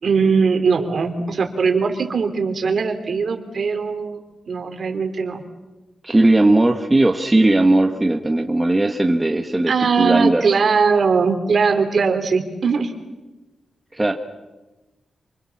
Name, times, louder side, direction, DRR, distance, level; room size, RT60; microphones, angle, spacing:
voice 1, 0.0-4.2 4.5-5.4 9.7-13.0, right 5 dB, 50° right, 6 dB, 3.6 m, -20 dB
voice 2, 6.0-9.7 10.0-10.4 13.9-14.1, right 2 dB, 15° right, 4 dB, 1.4 m, -17 dB
28.5 x 26.5 x 7.4 m, 1.1 s
wide cardioid pair, 150°, 0 cm